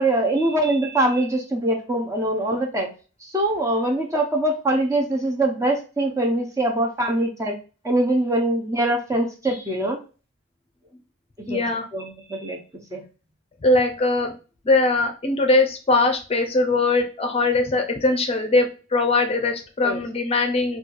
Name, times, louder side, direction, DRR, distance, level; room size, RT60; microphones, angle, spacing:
voice 1, 0.0-2.9 3.2-7.6 7.8-10.0 11.5-11.7 11.9-12.6 12.9-13.0 19.8-20.0, right 1 dB, 15° right, 1 dB, 0.6 m, -23 dB
voice 2, 11.5-11.8 13.6-14.3 14.6-20.8, left 2 dB, 30° left, 5 dB, 0.5 m, -21 dB
4.3 x 2.3 x 2.5 m, 0.34 s
head